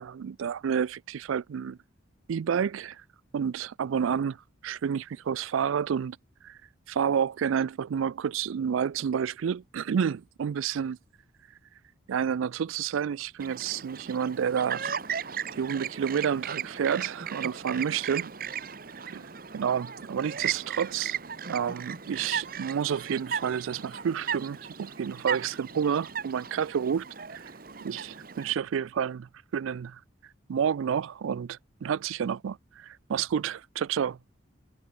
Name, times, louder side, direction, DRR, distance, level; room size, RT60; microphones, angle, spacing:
voice 1, 0.0-1.8 2.3-3.0 3.3-4.4 4.6-6.2 6.4-6.6 6.9-11.0 12.1-14.9 15.6-18.3 19.1-19.3 19.5-21.2 21.5-27.4 27.8-30.0 30.5-34.2, right 7 dB, 85° right, 0.4 m, -29 dB
Chirp tweet, 13.4-28.5, right 7 dB, 45° right, 1.0 m, -36 dB
head